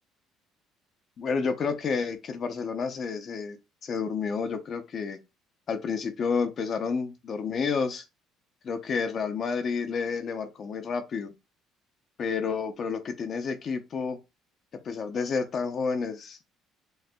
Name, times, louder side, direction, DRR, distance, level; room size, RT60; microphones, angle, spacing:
voice 1, 1.2-3.6 3.8-5.2 5.7-8.0 8.6-11.3 12.2-14.2 14.8-16.4, left 5 dB, 35° left, 0.5 m, -30 dB
6.2 x 2.5 x 2.2 m
cardioid pair, 160°, 0 cm